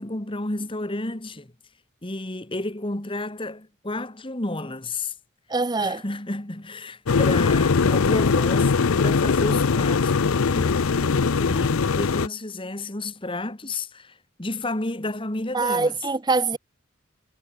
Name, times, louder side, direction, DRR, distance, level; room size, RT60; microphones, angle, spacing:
voice 1, 0.0-1.5 2.0-5.1 5.8-15.9, left 2 dB, 25° left, 1.7 m, -31 dB
voice 2, 5.5-6.0 15.5-16.6, right 3 dB, 20° right, 0.6 m, -23 dB
sound 1, 7.1-12.3, left 5 dB, 85° left, 0.6 m, -21 dB
head